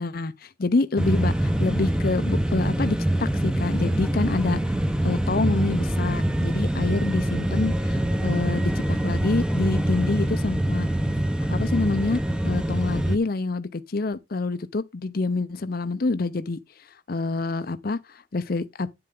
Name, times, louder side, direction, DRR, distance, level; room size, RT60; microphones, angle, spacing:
voice 1, 0.0-4.6 5.0-10.9 11.5-18.9, left 3 dB, 50° left, 0.6 m, -27 dB
sound 1, 1.0-13.2, right 1 dB, 5° right, 0.7 m, -24 dB
9.7 x 7.7 x 3.7 m
head